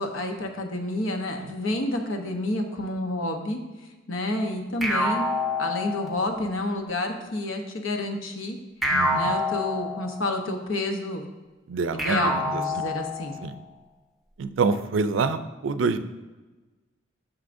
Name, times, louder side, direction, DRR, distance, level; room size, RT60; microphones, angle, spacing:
voice 1, 0.0-3.6 4.1-5.3 5.6-8.6 9.1-11.2 11.9-13.4, left 1 dB, 85° left, 4 dB, 0.9 m, -29 dB
sound 1, 4.8-6.4 8.8-10.4 12.0-13.5, left 1 dB, ahead, 0.7 m, -27 dB
voice 2, 8.9-9.3 11.7-12.6 13.4-13.5 14.4-16.0, right 4 dB, 75° right, 11 dB, 0.4 m, -26 dB
9.5 x 6.3 x 2.6 m, 1.2 s
head